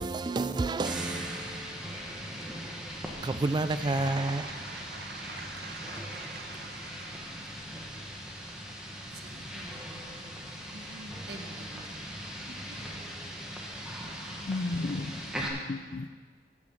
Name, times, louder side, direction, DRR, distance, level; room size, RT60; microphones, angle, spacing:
voice 1, 0.0-1.8 3.2-4.6, right 3 dB, 25° right, 0.3 m, -30 dB
sound 1, 0.8-15.5, equal, 5° right, 1.5 m, -40 dB
voice 2, 4.0-7.7 9.2-10.4 10.7-12.3 12.6-12.8 14.0-14.5, right 3 dB, 60° right, 1.2 m, -47 dB
voice 3, 14.4-16.1, left 2 dB, 50° left, 0.5 m, -34 dB
14.0 x 7.2 x 6.3 m
head